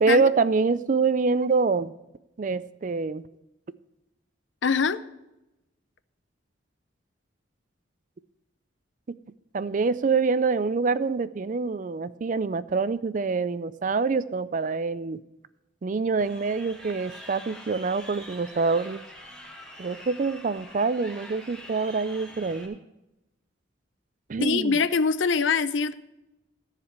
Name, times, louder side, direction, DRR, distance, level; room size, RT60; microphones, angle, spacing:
voice 1, 0.0-1.9 2.4-3.2 9.5-15.2 15.8-19.0 19.8-22.8 24.3-24.8, right 4 dB, 40° right, 16 dB, 0.4 m, -25 dB
voice 2, 4.6-5.0 24.4-25.9, left 5 dB, 70° left, 14 dB, 0.6 m, -23 dB
Crowd, 16.2-22.7, equal, 5° left, 1.9 m, -45 dB
14.0 x 5.0 x 8.0 m, 0.94 s
head